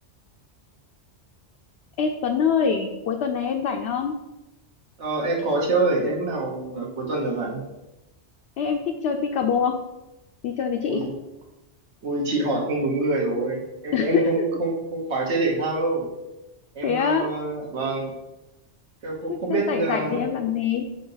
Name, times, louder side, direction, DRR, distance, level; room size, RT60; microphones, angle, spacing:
voice 1, 2.0-4.2 8.6-9.8 10.4-11.0 13.9-14.4 16.8-17.3 19.3-20.9, left 6 dB, 70° left, 3 dB, 0.8 m, -24 dB
voice 2, 5.0-7.6 10.8-11.1 12.0-16.1 16.7-18.1 19.0-20.2, right 2 dB, 75° right, -1 dB, 1.5 m, -26 dB
5.1 x 4.0 x 5.6 m, 0.99 s
omnidirectional pair, 1.2 m